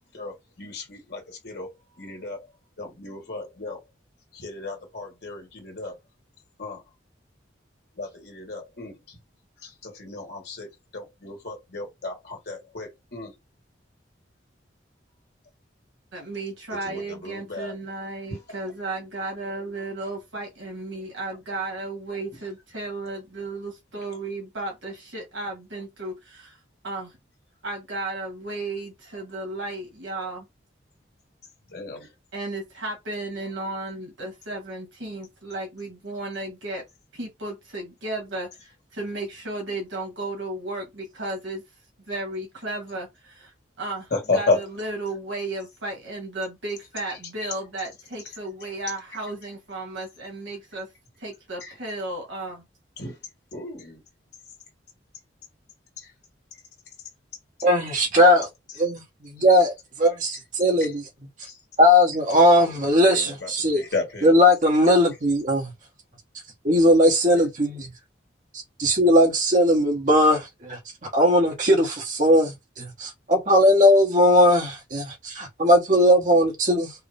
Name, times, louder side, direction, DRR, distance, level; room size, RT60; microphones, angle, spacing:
voice 1, 0.1-2.4 2.8-3.8 4.3-6.0 6.6-6.8 8.0-9.2 9.6-13.4 16.8-17.7 18.3-18.6 22.3-22.4 31.7-32.1 44.1-44.6 47.1-47.6 48.6-48.7 51.6-51.8 53.0-53.1 53.5-54.0 56.5-56.6 58.7-58.8 59.4-59.5 60.8-60.9 61.5-61.6 62.3-64.4, left 3 dB, 60° left, 1.6 m, -33 dB
voice 2, 16.1-26.4 26.8-27.1 27.6-30.5 32.3-36.8 37.2-38.5 38.9-41.6 42.1-43.5 43.8-50.9 51.2-52.6, right 2 dB, 85° right, 1.7 m, -34 dB
voice 3, 57.6-58.5 58.8-59.7 60.0-60.3 60.6-61.0 61.8-63.8 64.2-65.7 66.6-67.9 68.8-70.8 71.1-76.9, equal, 45° right, 1.1 m, -18 dB
4.6 x 2.2 x 3.4 m
head